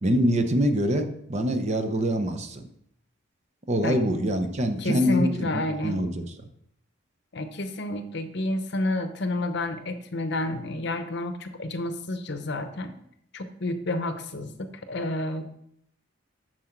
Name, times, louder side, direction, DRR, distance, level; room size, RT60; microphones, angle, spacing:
voice 1, 0.0-2.6 3.7-6.2, equal, 30° right, 6 dB, 0.7 m, -25 dB
voice 2, 4.8-6.0 7.3-13.0 13.3-15.4, left 2 dB, 55° left, 9 dB, 0.8 m, -30 dB
7.6 x 6.5 x 4.5 m, 0.71 s
head